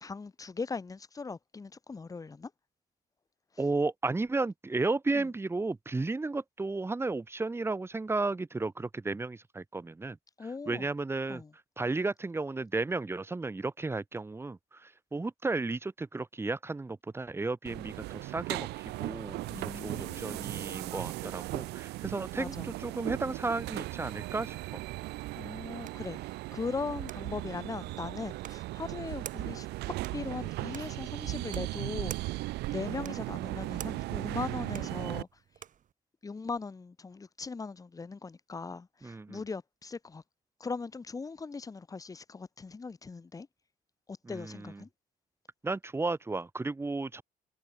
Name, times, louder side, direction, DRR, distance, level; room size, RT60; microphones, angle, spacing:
voice 1, 0.0-2.5 5.1-5.3 10.4-10.9 11.3-11.5 19.5-20.5 22.4-22.7 25.4-26.2 26.5-29.7 30.1-35.3 36.2-40.2 40.6-43.5 44.1-44.9, left 4 dB, 20° left, 1.3 m, -39 dB
voice 2, 3.6-10.2 10.7-11.4 11.8-18.7 19.0-19.4 19.8-24.8 39.0-39.4 44.3-44.8 45.6-47.2, right 3 dB, 15° right, 1.2 m, -33 dB
sound 1, 17.7-35.2, right 19 dB, 80° right, 0.5 m, -37 dB
sound 2, 25.2-35.9, right 9 dB, 50° right, 3.2 m, -51 dB
cardioid pair, 110°, 17 cm